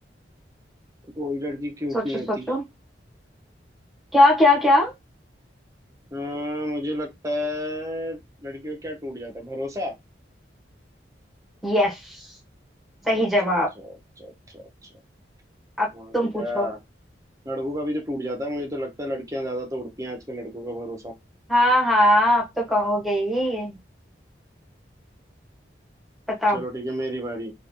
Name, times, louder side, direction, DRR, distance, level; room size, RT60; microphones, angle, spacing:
voice 1, 1.2-2.5 6.1-9.9 13.1-13.2 13.8-14.9 15.9-16.8 17.4-21.1 26.5-27.5, equal, 20° right, 0.7 m, -31 dB
voice 2, 1.9-2.6 4.1-4.9 11.6-12.3 13.0-13.7 15.8-15.9 16.1-16.7 21.5-23.8 26.3-26.6, left 1 dB, ahead, 1.1 m, -20 dB
3.9 x 2.3 x 2.8 m
head